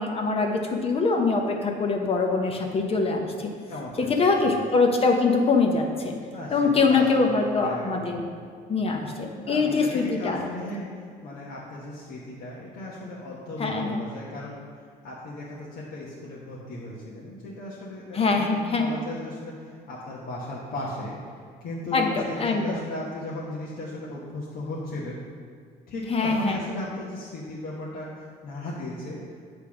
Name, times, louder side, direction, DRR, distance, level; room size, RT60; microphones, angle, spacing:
voice 1, 0.0-3.5 4.0-6.1 6.5-8.2 8.7-10.5 13.6-14.0 18.1-18.9 21.9-22.8 26.1-26.6, left 4 dB, 35° left, 3 dB, 1.0 m, -23 dB
voice 2, 3.7-4.2 4.5-4.6 6.3-7.3 7.6-8.0 9.4-14.6 15.0-25.2 25.9-29.4, left 1 dB, 60° left, -6 dB, 1.3 m, -36 dB
8.3 x 3.5 x 5.9 m, 2.2 s
cardioid pair, 110°, 17 cm